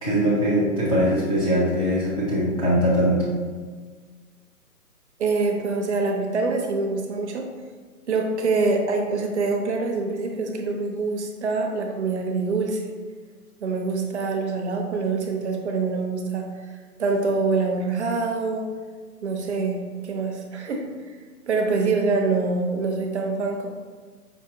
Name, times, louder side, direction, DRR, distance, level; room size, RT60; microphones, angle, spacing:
voice 1, 0.0-3.3, equal, 25° left, -10 dB, 0.5 m, -21 dB
voice 2, 5.2-7.5 8.1-12.8 13.6-16.5 17.0-18.6 19.2-21.1 21.5-23.7, right 3 dB, 50° right, 2 dB, 0.6 m, -25 dB
5.5 x 2.3 x 3.7 m, 1.5 s
hypercardioid pair, 160°, 46 cm